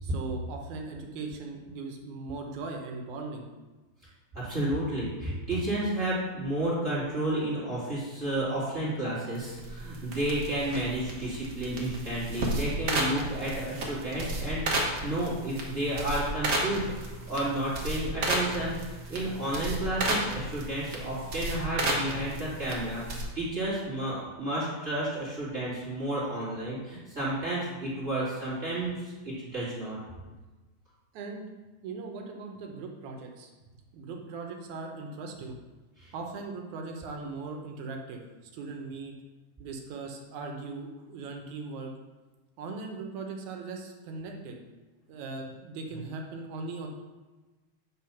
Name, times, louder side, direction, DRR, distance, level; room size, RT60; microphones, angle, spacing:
voice 1, 0.0-3.5 31.1-31.5 31.8-33.5 33.9-35.6 36.1-38.2 38.5-39.1 39.6-41.9 42.6-44.6 45.1-46.9, right 3 dB, 80° right, 2 dB, 2.3 m, -39 dB
voice 2, 4.3-14.6 15.0-30.0 36.0-36.1, right 1 dB, 20° right, -8 dB, 2.8 m, -31 dB
sound 1, 9.3-23.2, right 1 dB, 50° right, 1.1 m, -33 dB
9.1 x 3.8 x 5.8 m, 1.2 s
omnidirectional pair, 3.4 m